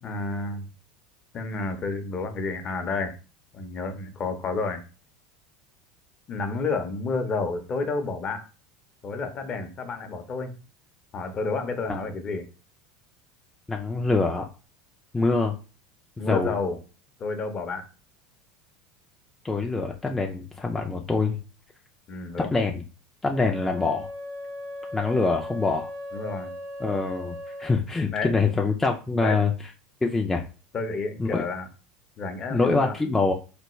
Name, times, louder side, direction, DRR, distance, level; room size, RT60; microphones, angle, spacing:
voice 1, 0.0-0.7 1.3-3.1 3.5-4.8 6.3-8.5 9.0-10.5 11.1-12.5 16.2-16.8 17.2-17.9 22.1-22.5 26.1-26.5 28.1-28.4 29.2-29.4 30.7-31.7 32.2-32.9, left 3 dB, 40° left, 7 dB, 0.7 m, -30 dB
voice 2, 13.7-14.5 15.1-15.5 16.2-16.5 19.4-21.4 22.5-22.7 23.2-24.1 24.9-25.9 26.8-29.5 30.0-30.4 31.2-31.4 32.5-33.3, left 3 dB, 10° left, 1 dB, 0.4 m, -25 dB
Wind instrument woodwind instrument, 23.3-27.8, left 1 dB, 70° right, 0.7 m, -37 dB
3.3 x 2.2 x 3.1 m, 0.34 s
hypercardioid pair, 95°, 2 cm